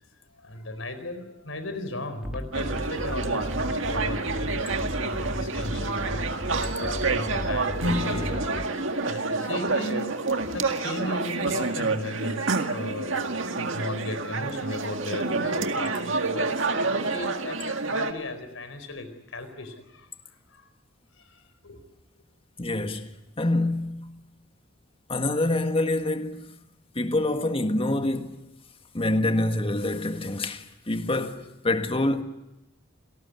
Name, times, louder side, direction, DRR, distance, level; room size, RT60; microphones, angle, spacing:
voice 1, 0.3-6.3 6.8-8.5 9.0-10.1 10.5-16.5 16.8-20.1 20.5-20.7 21.2-21.8, left 2 dB, 75° left, 4.4 m, -36 dB
sound 1, 2.2-8.7, equal, 5° right, 2.3 m, -35 dB
sound 2, 2.5-18.1, right 3 dB, 65° right, 2.0 m, -28 dB
Acoustic guitar / Strum, 7.8-11.0, left 1 dB, 85° right, 5.9 m, -34 dB
voice 2, 22.6-24.1 25.1-26.5 26.9-28.5 28.9-32.2, left 2 dB, 30° left, 1.7 m, -26 dB
28.0 x 18.5 x 9.6 m
head